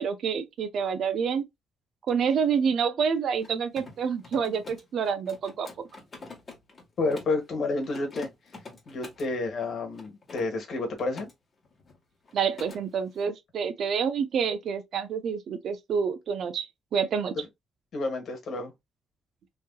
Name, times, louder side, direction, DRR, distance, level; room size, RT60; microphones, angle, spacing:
voice 1, 0.0-1.5 2.1-5.7 12.3-17.3, right 6 dB, 65° right, 0.6 m, -28 dB
Mechanisms, 3.3-7.4 7.8-9.3 9.9-11.3 11.6-12.0 12.2-12.8, left 4 dB, 35° left, 1.3 m, -45 dB
voice 2, 7.0-8.3 8.9-11.3 17.9-18.7, left 3 dB, 60° left, 1.4 m, -30 dB
3.1 x 2.8 x 2.2 m
cardioid pair, 90°, 0 cm